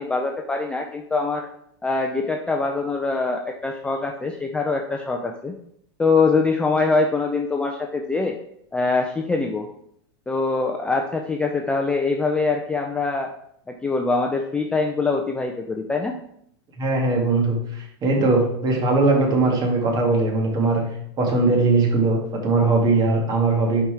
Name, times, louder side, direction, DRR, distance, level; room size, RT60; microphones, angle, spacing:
voice 1, 0.0-1.5 1.8-5.5 6.0-8.4 8.7-9.7 10.3-13.3 13.7-16.2, left 3 dB, 5° left, 2 dB, 0.4 m, -23 dB
voice 2, 16.8-20.8 21.2-23.8, right 3 dB, 30° right, 0 dB, 1.8 m, -20 dB
5.3 x 4.3 x 4.7 m, 0.71 s
supercardioid pair, 135°, 14 cm